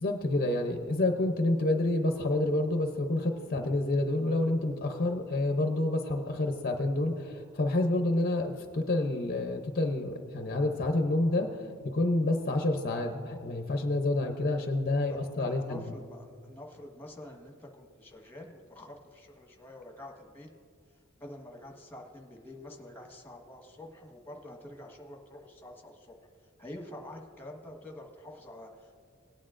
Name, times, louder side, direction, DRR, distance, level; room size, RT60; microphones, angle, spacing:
voice 1, 0.0-11.6 11.9-15.8, left 2 dB, 45° left, 4 dB, 0.6 m, -28 dB
voice 2, 15.1-20.5 21.2-26.1 26.6-29.0, left 1 dB, 10° left, 1 dB, 1.3 m, -47 dB
18.0 x 9.6 x 2.5 m, 2.2 s
head